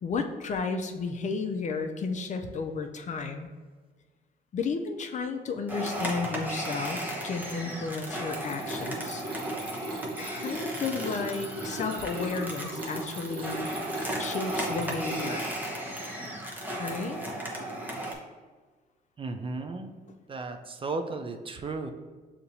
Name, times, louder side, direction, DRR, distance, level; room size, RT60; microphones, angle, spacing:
voice 1, 0.0-3.5 4.5-9.2 10.2-13.8 14.2-15.6 16.8-17.2, left 4 dB, 45° left, 6 dB, 0.5 m, -33 dB
sound 1, 5.7-18.1, right 1 dB, 10° right, 0.9 m, -35 dB
Mechanisms, 8.3-15.7, right 2 dB, 85° right, 1.2 m, -38 dB
voice 2, 19.2-20.0 20.3-21.9, right 3 dB, 30° right, 6 dB, 0.4 m, -35 dB
6.7 x 2.9 x 2.7 m, 1.4 s
cardioid pair, 100°, 17 cm